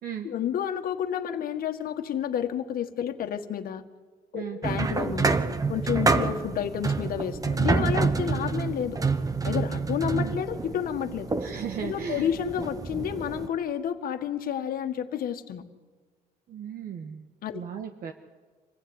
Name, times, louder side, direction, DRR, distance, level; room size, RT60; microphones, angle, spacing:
voice 1, 0.2-3.8 4.3-5.3 5.7-9.0 9.4-11.3 11.8-15.6 17.4-17.6, left 9 dB, 60° left, 6 dB, 1.7 m, -30 dB
sound 1, 4.6-13.5, right 4 dB, 20° right, 1.2 m, -28 dB
voice 2, 11.4-12.3 16.5-17.2 17.5-18.1, right 8 dB, 60° right, 3 dB, 1.6 m, -36 dB
26.0 x 16.0 x 9.9 m, 1.4 s
cardioid pair, 110°, 17 cm